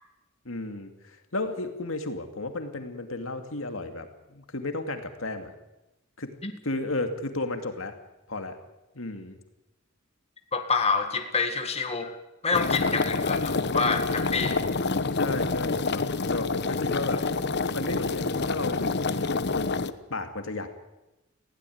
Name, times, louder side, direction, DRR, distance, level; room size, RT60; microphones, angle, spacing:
voice 1, 0.4-5.5 6.2-6.3 6.6-7.9 8.3-8.6 8.9-9.4 15.1-17.2 17.6-20.7, left 2 dB, 70° left, 7 dB, 2.5 m, -33 dB
voice 2, 10.5-12.2 12.4-14.6, left 4 dB, 30° left, 6 dB, 1.8 m, -27 dB
sound 1, 12.5-19.9, left 3 dB, 55° left, 1.0 m, -27 dB
20.5 x 16.5 x 9.5 m, 0.97 s
head